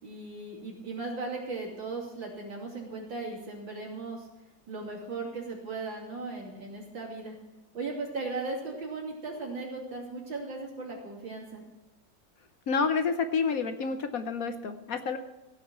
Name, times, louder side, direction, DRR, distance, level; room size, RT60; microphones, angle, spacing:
voice 1, 0.0-4.3 4.7-7.4 7.7-11.6, right 3 dB, 85° right, -2 dB, 4.0 m, -37 dB
voice 2, 12.7-15.2, left 5 dB, 60° left, 9 dB, 1.1 m, -29 dB
16.5 x 5.7 x 8.8 m, 0.97 s
omnidirectional pair, 2.0 m